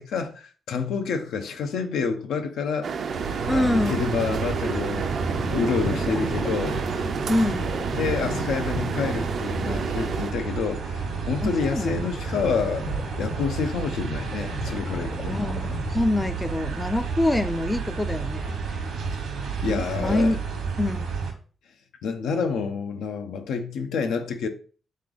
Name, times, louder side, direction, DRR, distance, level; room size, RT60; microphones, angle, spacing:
voice 1, 0.0-2.9 3.5-5.1 5.5-6.8 8.0-12.9 13.2-15.4 19.6-20.4 22.0-24.5, left 5 dB, 85° left, 0.6 m, -28 dB
sound 1, 2.8-10.3, right 5 dB, 60° right, 0.4 m, -31 dB
sound 2, 3.1-21.3, right 5 dB, 80° right, 1.1 m, -31 dB
voice 2, 3.5-4.1 7.3-7.8 11.4-12.1 15.3-18.8 19.6-20.4 20.8-21.1, left 1 dB, 10° left, 0.4 m, -26 dB
sound 3, 3.7-16.3, left 3 dB, 40° left, 0.7 m, -38 dB
3.8 x 3.2 x 3.8 m
cardioid pair, 85°, 0 cm